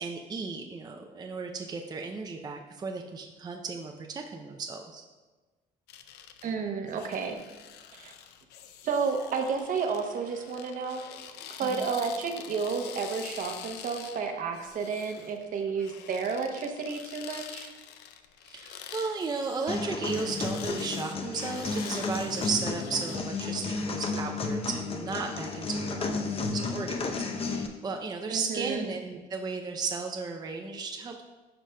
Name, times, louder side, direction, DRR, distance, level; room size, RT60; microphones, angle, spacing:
voice 1, 0.0-5.0 11.6-11.9 18.5-31.2, right 4 dB, 25° right, 2 dB, 0.5 m, -35 dB
sound 1, 5.9-23.2, left 9 dB, 80° left, 0.5 m, -46 dB
voice 2, 6.4-7.4 7.9-8.1 8.8-11.0 11.6-17.7 28.3-28.9, right 5 dB, 55° right, 5 dB, 0.8 m, -31 dB
sound 2, 19.7-27.7, left 4 dB, 35° left, 0.7 m, -32 dB
11.0 x 5.0 x 2.2 m, 1.3 s
cardioid pair, 110°, 17 cm